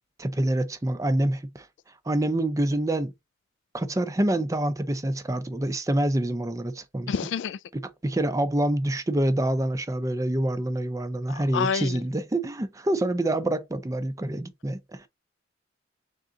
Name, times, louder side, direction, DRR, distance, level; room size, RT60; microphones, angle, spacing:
voice 1, 0.2-1.7 2.1-3.1 3.7-7.1 8.0-15.1, right 1 dB, 15° right, 0.5 m, -26 dB
voice 2, 7.1-7.6 11.3-12.0, left 6 dB, 75° left, 0.3 m, -28 dB
3.8 x 3.6 x 3.6 m
head